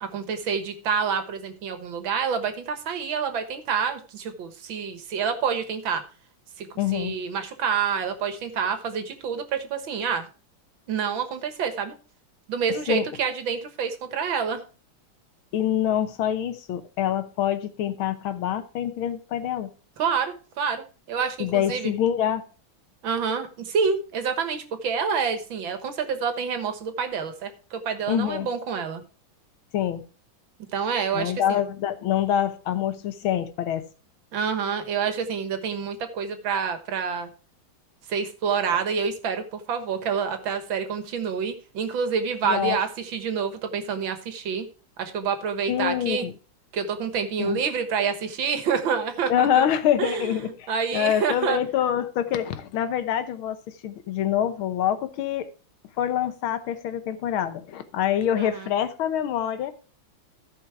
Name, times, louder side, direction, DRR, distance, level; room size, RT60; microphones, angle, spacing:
voice 1, 0.0-6.0 6.6-6.7 6.9-10.2 10.9-12.0 12.5-14.6 20.0-21.9 23.0-29.0 30.7-31.6 34.3-37.3 38.1-44.7 45.0-46.3 46.7-49.7 50.0-51.6 58.4-58.7, right 6 dB, 75° right, 8 dB, 2.0 m, -27 dB
voice 2, 6.8-7.2 12.9-13.1 15.5-19.7 21.4-22.4 28.1-28.5 29.7-30.0 31.1-33.8 42.4-42.8 45.7-46.3 47.4-47.6 49.3-55.5 56.0-59.7, left 10 dB, 85° left, 11 dB, 1.8 m, -25 dB
14.0 x 5.2 x 4.7 m, 0.36 s
omnidirectional pair, 2.2 m